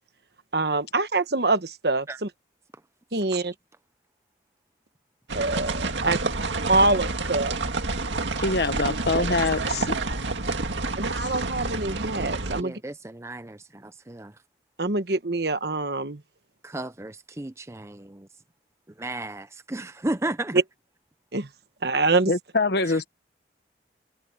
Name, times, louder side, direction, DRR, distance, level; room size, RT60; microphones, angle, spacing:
voice 1, 0.5-2.3 3.1-3.5 5.3-6.2 6.7-7.5 11.0-12.7 14.8-16.2 20.5-20.6 21.3-21.5 21.8-22.3, right 2 dB, 60° right, 1.2 m, -24 dB
sound 1, 5.3-12.6, right 3 dB, 85° right, 2.1 m, -28 dB
voice 2, 8.4-9.9 11.2-11.4 22.3-23.1, left 3 dB, 65° left, 1.1 m, -25 dB
voice 3, 12.6-14.3 16.6-18.3 19.0-20.6 22.8-23.0, right 1 dB, 15° right, 0.5 m, -34 dB
head